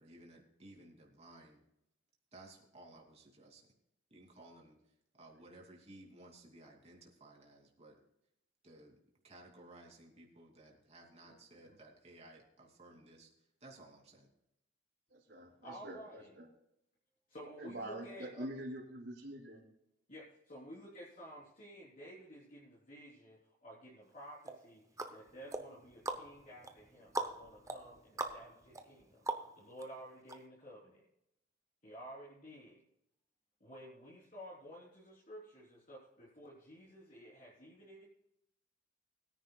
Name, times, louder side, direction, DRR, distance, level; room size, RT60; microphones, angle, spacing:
voice 1, 0.0-1.6 2.3-3.7 4.1-4.8 5.2-8.0 8.6-9.0 9.2-13.3 13.6-14.3, right 2 dB, 35° right, 0 dB, 2.8 m, -57 dB
voice 2, 15.1-16.5 17.6-19.6, right 1 dB, 60° right, -6 dB, 3.1 m, -45 dB
voice 3, 15.6-16.3 17.3-18.5 20.1-24.8 25.1-29.2 29.6-31.0 31.8-32.8 33.6-38.1, equal, 45° left, -7 dB, 3.8 m, -52 dB
sound 1, 24.4-29.8 30.3-30.4, right 2 dB, 15° right, 0.8 m, -42 dB
21.5 x 10.0 x 2.4 m, 0.81 s
head